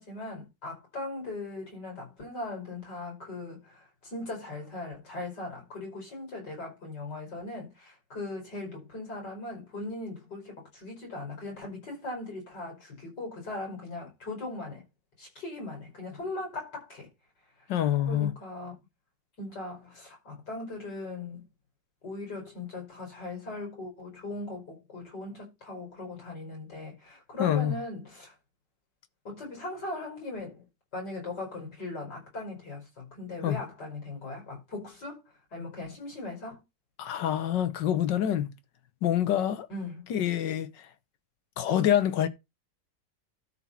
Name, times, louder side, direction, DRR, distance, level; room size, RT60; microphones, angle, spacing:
voice 1, 0.0-14.8 15.2-17.1 17.6-17.7 18.1-18.7 19.4-21.4 22.0-28.3 29.2-30.7 30.9-35.2 35.5-36.6 39.7-40.1, left 2 dB, 70° left, 6.0 m, -39 dB
voice 2, 17.7-18.3 27.4-27.8 33.4-33.6 37.0-38.5 39.0-39.7 40.1-40.9 41.6-42.3, left 10 dB, 85° left, 1.6 m, -26 dB
12.5 x 4.3 x 5.7 m
omnidirectional pair, 1.9 m